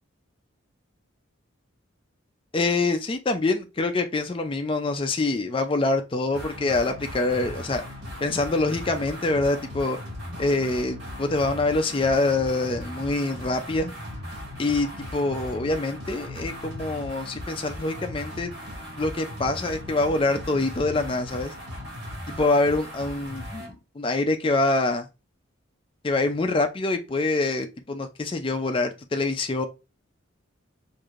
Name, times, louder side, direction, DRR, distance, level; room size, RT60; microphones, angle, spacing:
voice 1, 2.5-7.8 8.2-10.0 10.4-13.9 14.6-18.5 19.0-21.5 22.3-25.1 26.0-29.7, left 2 dB, 25° left, 0.4 m, -25 dB
sound 1, 6.3-23.7, left 1 dB, 55° right, 1.8 m, -38 dB
4.6 x 2.6 x 2.5 m
head